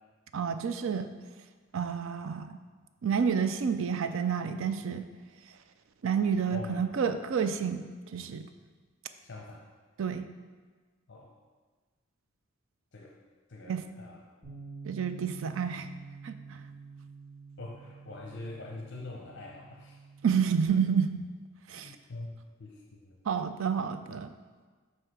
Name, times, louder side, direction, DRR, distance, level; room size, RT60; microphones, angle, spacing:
voice 1, 0.3-1.1 1.7-2.6 3.0-5.1 6.0-7.9 8.1-8.5 10.0-10.3 13.7-13.9 14.9-15.9 16.2-16.6 20.2-21.2 21.7-21.9 23.3-24.3, right 6 dB, 70° right, 10 dB, 0.4 m, -29 dB
voice 2, 6.5-6.8 9.2-9.6 11.1-11.3 12.9-13.2 13.5-14.2 17.6-20.0 21.8-23.2, left 2 dB, 55° left, -1 dB, 0.6 m, -43 dB
Bass guitar, 14.4-20.7, right 5 dB, ahead, 1.9 m, -48 dB
7.8 x 2.8 x 5.8 m, 1.4 s
head